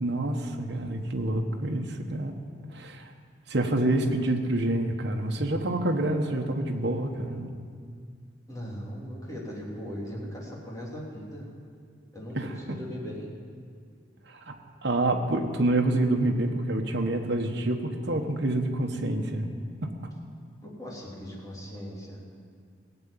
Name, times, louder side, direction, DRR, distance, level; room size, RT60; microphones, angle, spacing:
voice 1, 0.0-2.3 2.7-3.1 3.5-7.5 12.3-12.5 14.3-14.5 14.8-19.5 19.8-19.9, right 1 dB, 65° right, 2 dB, 1.3 m, -27 dB
voice 2, 8.5-11.4 12.1-12.4 12.7-13.3 20.8-22.2, equal, 20° left, -4 dB, 3.2 m, -38 dB
18.0 x 8.1 x 8.9 m, 2.1 s
head